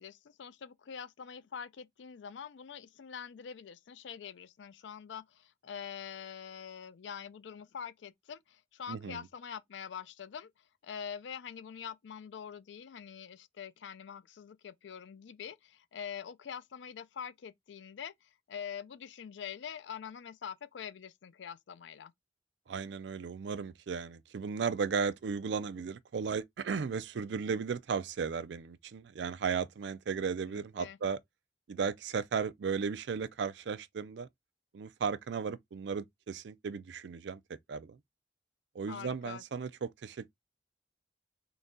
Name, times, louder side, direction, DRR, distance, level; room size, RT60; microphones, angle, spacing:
voice 1, 0.0-10.5 10.8-22.1 30.5-31.0 38.9-39.4, left 7 dB, 75° left, 0.4 m, -45 dB
voice 2, 8.9-9.3 22.7-31.2 31.7-34.3 34.7-37.4 37.7-38.0 38.7-40.3, right 5 dB, 65° right, 0.4 m, -35 dB
3.9 x 2.3 x 3.7 m
head